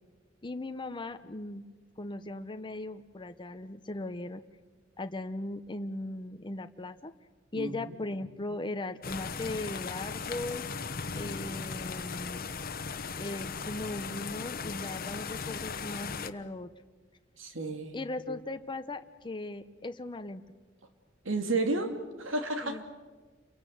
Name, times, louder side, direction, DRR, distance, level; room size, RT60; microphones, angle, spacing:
voice 1, 0.4-1.7 2.0-4.4 5.0-7.1 7.5-10.6 11.1-12.5 13.2-16.7 17.9-20.4 22.6-22.8, left 2 dB, 25° left, 8 dB, 0.8 m, -38 dB
voice 2, 7.5-8.0 17.4-17.9 21.2-22.8, right 2 dB, 80° right, 6 dB, 2.6 m, -32 dB
sound 1, 9.0-16.3, left 5 dB, 50° left, 1.1 m, -37 dB
29.0 x 23.5 x 7.8 m, 1.4 s
head